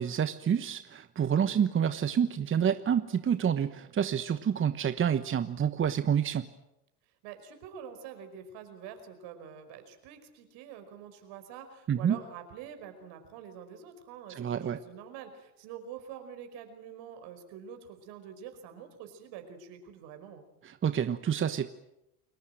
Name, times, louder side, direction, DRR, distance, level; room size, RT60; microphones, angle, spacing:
voice 1, 0.0-6.5 11.9-12.2 14.3-14.8 20.6-21.7, right 8 dB, 25° right, 11 dB, 1.2 m, -28 dB
voice 2, 7.2-20.4, right 8 dB, 60° right, 8 dB, 5.2 m, -46 dB
29.5 x 21.0 x 7.9 m, 0.87 s
hypercardioid pair, 80°, 45 cm